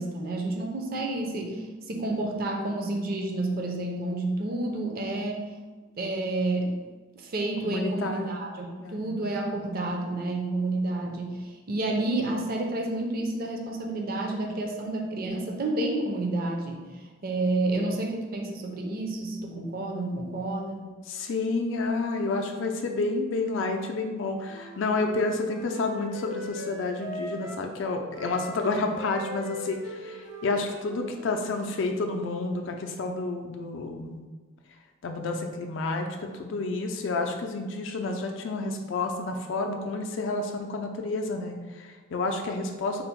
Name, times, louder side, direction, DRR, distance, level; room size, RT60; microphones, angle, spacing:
voice 1, 0.0-5.4 6.0-6.8 7.2-16.8 17.2-20.9, right 2 dB, 50° right, 1 dB, 0.5 m, -30 dB
voice 2, 7.6-8.2 8.8-9.2 21.1-34.2 35.0-43.0, left 3 dB, 70° left, 4 dB, 0.4 m, -30 dB
Wind instrument woodwind instrument, 24.5-27.6 28.1-31.4, right 1 dB, 80° right, 0.9 m, -40 dB
3.9 x 2.0 x 4.4 m, 1.3 s
head